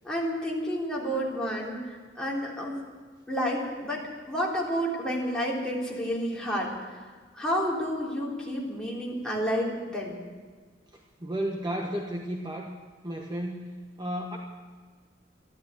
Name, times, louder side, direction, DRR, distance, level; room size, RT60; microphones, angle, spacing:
voice 1, 0.0-2.8 3.3-7.0 7.3-10.2, equal, 5° left, -5 dB, 3.6 m, -30 dB
voice 2, 11.2-12.7 13.0-13.7 14.0-14.4, right 1 dB, 25° right, 0 dB, 1.2 m, -32 dB
14.0 x 12.5 x 8.1 m, 1.5 s
head